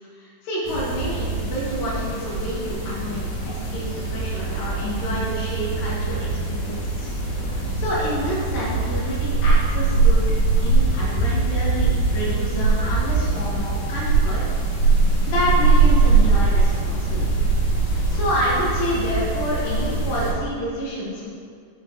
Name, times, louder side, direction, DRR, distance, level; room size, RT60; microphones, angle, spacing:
voice 1, 0.2-3.9 4.1-7.1 7.5-10.3 10.6-14.4 15.2-17.3 18.1-21.3, equal, 85° left, -6 dB, 3.7 m, -28 dB
sound 1, 0.6-20.3, right 3 dB, 60° left, 3.4 m, -22 dB
7.7 x 6.2 x 4.6 m, 2.1 s
omnidirectional pair, 3.9 m